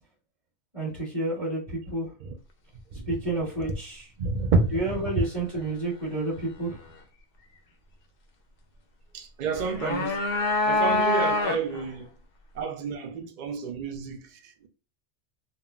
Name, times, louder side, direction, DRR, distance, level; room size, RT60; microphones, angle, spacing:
voice 1, 0.7-2.1 3.0-4.1 4.7-6.8, right 2 dB, 25° right, 1.6 m, -30 dB
voice 2, 4.2-4.7 9.1-10.2 10.7-12.1 12.6-14.7, right 4 dB, 70° right, 0.4 m, -29 dB
sound 1, 9.6-11.9, left 3 dB, 60° left, 0.6 m, -25 dB
3.6 x 2.1 x 2.3 m
omnidirectional pair, 1.3 m